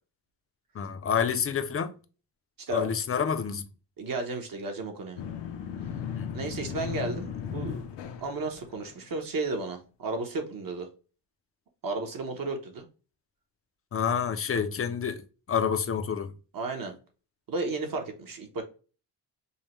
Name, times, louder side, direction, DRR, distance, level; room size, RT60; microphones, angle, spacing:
voice 1, 0.7-1.9 2.7-3.7 6.2-6.5 13.9-16.3, left 7 dB, 35° left, 0.4 m, -28 dB
voice 2, 2.6-2.9 4.0-5.2 6.3-7.8 8.2-10.9 11.8-12.9 16.5-16.9 17.5-18.6, right 2 dB, 50° right, 0.9 m, -33 dB
sound 1, 5.2-9.1, left 8 dB, 75° left, 0.7 m, -36 dB
5.4 x 2.2 x 2.9 m
wide cardioid pair, 155°, 42 cm